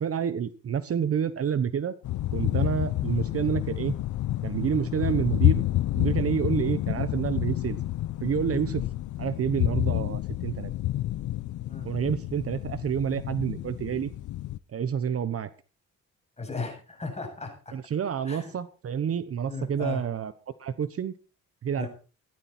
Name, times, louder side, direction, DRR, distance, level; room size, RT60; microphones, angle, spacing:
voice 1, 0.0-1.9 2.3-3.9 4.4-5.6 5.9-7.8 8.2-8.8 9.2-10.7 11.8-14.1 14.7-15.5 17.7-20.3 20.6-21.1 21.6-21.9, right 8 dB, 50° right, 13 dB, 1.1 m, -28 dB
sound 1, 2.0-14.6, left 15 dB, 75° left, 0.7 m, -29 dB
voice 2, 16.4-17.7 18.2-18.5 19.5-20.0 21.8-21.9, left 4 dB, 20° left, 2 dB, 7.9 m, -36 dB
16.0 x 13.0 x 4.4 m, 0.36 s
cardioid pair, 110°, 31 cm